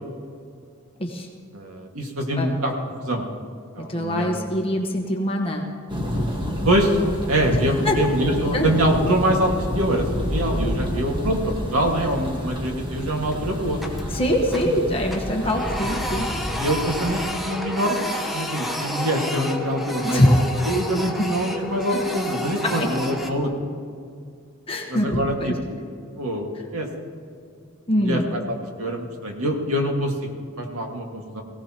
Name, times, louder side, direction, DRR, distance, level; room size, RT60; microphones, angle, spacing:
voice 1, 1.5-2.7 3.0-3.2 3.8-4.5 6.6-6.9 7.3-11.4 11.7-13.8 15.4-15.7 16.6-20.3 20.7-23.5 24.9-25.8 26.2-26.9 28.0-28.4 28.8-30.1 30.6-31.4, right 1 dB, 85° right, 1 dB, 2.0 m, -24 dB
voice 2, 3.9-5.6 7.5-7.6 7.8-8.0 8.5-8.7 14.1-16.3 20.0-20.4 21.2-21.3 21.9-22.0 22.6-22.9 24.7-25.6 27.9-28.3, equal, 25° left, 1 dB, 1.3 m, -23 dB
Thunder, 5.9-17.2, equal, 20° right, 1.5 m, -29 dB
Printer, 11.8-12.3 12.7-12.8 13.3-14.8 15.1-23.3, left 1 dB, ahead, 1.0 m, -31 dB
19.0 x 16.5 x 3.0 m, 2.3 s
head